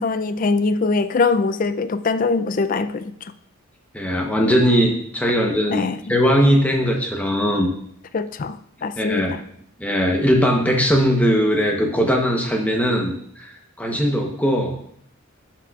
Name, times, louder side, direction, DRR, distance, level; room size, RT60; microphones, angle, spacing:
voice 1, 0.0-3.1 5.7-6.0 8.1-9.4, left 4 dB, 40° left, 12 dB, 0.4 m, -22 dB
voice 2, 3.9-5.8 6.1-7.7 9.0-9.4 9.8-13.5 13.8-14.8, equal, 5° left, 1 dB, 0.9 m, -19 dB
13.0 x 5.9 x 2.4 m, 0.68 s
head